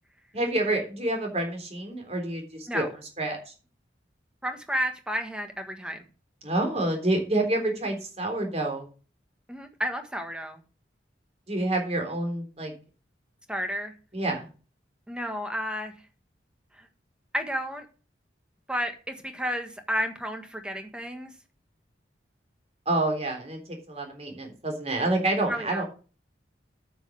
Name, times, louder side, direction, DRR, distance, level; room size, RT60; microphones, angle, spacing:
voice 1, 0.3-2.8 3.2-3.5 6.4-8.9 11.5-12.7 14.1-14.5 22.9-23.6 23.9-25.8, right 2 dB, 35° right, 3 dB, 3.5 m, -28 dB
voice 2, 4.4-6.0 9.5-10.6 13.5-13.9 15.1-15.9 16.8-16.9 17.3-17.8 18.7-21.3 25.5-25.8, equal, 5° right, 6 dB, 1.5 m, -31 dB
9.5 x 6.2 x 7.4 m, 0.36 s
head